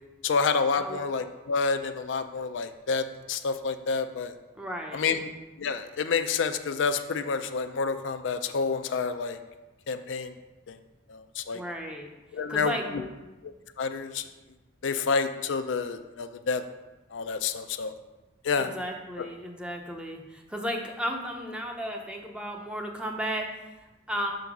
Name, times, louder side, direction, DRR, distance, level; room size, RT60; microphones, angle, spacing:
voice 1, 0.2-4.3 4.9-5.3 5.6-9.4 9.9-10.3 10.7-10.8 11.1-11.6 12.3-13.0 13.4-14.2 14.8-16.6 17.1-17.9 18.4-18.7 19.2-19.3, left 5 dB, 75° left, 9 dB, 0.4 m, -29 dB
voice 2, 4.6-5.2 11.5-12.1 12.5-13.1 18.6-24.3, equal, 5° right, 2 dB, 0.6 m, -34 dB
5.6 x 3.9 x 5.9 m, 1.1 s
head